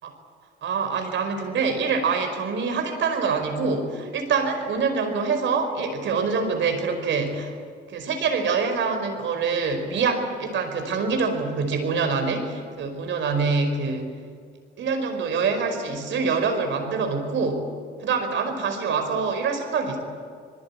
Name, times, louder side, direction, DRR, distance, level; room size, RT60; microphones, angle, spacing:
voice 1, 0.6-7.5 7.9-14.1 14.8-17.6 18.0-20.0, right 5 dB, 70° right, 6 dB, 5.1 m, -25 dB
26.5 x 21.0 x 8.7 m, 2.1 s
cardioid pair, 90°, 20 cm